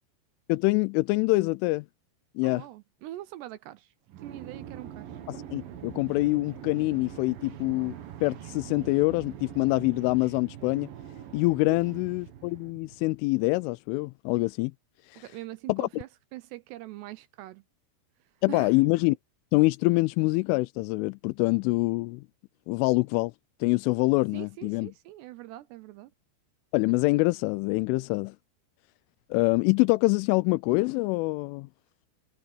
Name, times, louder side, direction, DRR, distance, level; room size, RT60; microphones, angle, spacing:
voice 1, 0.5-1.9 2.4-2.6 5.3-7.9 8.2-10.9 11.3-14.7 15.1-15.2 15.7-15.9 18.4-19.2 19.5-22.2 22.7-23.3 23.6-24.9 26.7-28.3 29.3-31.7, left 24 dB, 90° left, 3.1 m, -25 dB
voice 2, 2.4-5.2 11.7-11.8 15.2-17.6 18.2-18.8 24.3-26.1, right 15 dB, 80° right, 2.5 m, -43 dB
sound 1, 4.1-13.1, right 10 dB, 60° right, 2.7 m, -43 dB
omnidirectional pair, 5.5 m